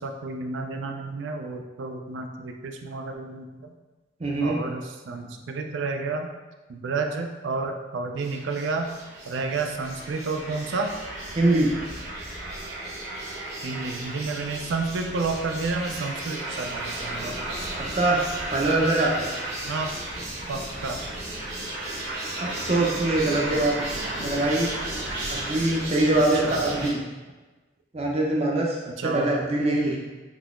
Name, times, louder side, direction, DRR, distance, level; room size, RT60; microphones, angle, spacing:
voice 1, 0.0-3.7 4.4-6.3 6.7-8.9 9.3-10.9 13.6-17.3 19.7-19.9 20.5-21.0 25.4-25.5 26.4-26.6 29.0-29.3, right 3 dB, 85° right, 5 dB, 0.4 m, -30 dB
voice 2, 4.2-4.6 11.4-11.7 17.9-18.2 18.5-19.3 22.4-24.7 25.3-27.0 27.9-30.0, right 2 dB, 35° right, -2 dB, 0.5 m, -23 dB
sound 1, 8.2-26.9, right 1 dB, 60° right, 1.0 m, -34 dB
3.7 x 2.8 x 2.5 m, 1.2 s
head